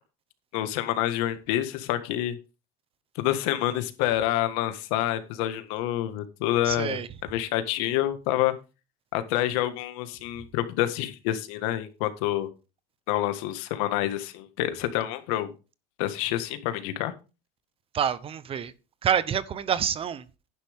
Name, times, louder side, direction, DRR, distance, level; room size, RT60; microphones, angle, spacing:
voice 1, 0.5-2.4 3.2-7.0 7.3-8.5 9.1-12.5 13.1-15.5 16.0-17.1, left 13 dB, 80° left, 1.8 m, -27 dB
voice 2, 6.6-7.1 17.9-18.7 19.0-20.2, right 8 dB, 30° right, 0.9 m, -27 dB
11.0 x 10.0 x 3.7 m
cardioid pair, 130°, 18 cm